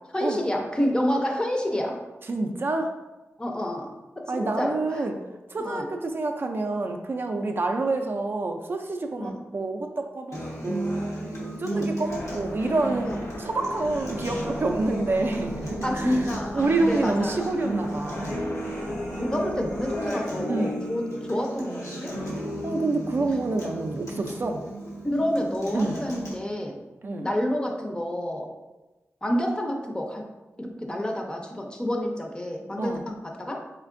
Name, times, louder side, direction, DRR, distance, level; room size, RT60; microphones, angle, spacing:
voice 1, 0.1-2.0 3.4-5.1 5.6-5.9 9.2-9.4 11.7-11.9 13.0-13.2 15.4-15.5 15.8-17.5 19.1-22.1 25.0-26.8 27.2-28.5 29.2-30.2 30.6-33.6, equal, 15° left, 2 dB, 0.5 m, -29 dB
voice 2, 2.3-2.9 4.3-5.2 5.5-11.0 11.4-16.2 16.5-18.4 20.5-20.8 22.6-24.6 25.7-26.0 27.0-27.3 32.8-33.0, right 2 dB, 45° right, 4 dB, 0.3 m, -28 dB
Acoustic guitar, 10.3-26.3, right 1 dB, 90° left, 1.0 m, -34 dB
sound 1, 12.1-20.1, equal, 60° left, 0.8 m, -39 dB
4.4 x 3.2 x 2.5 m, 1.1 s
wide cardioid pair, 110°, 5 cm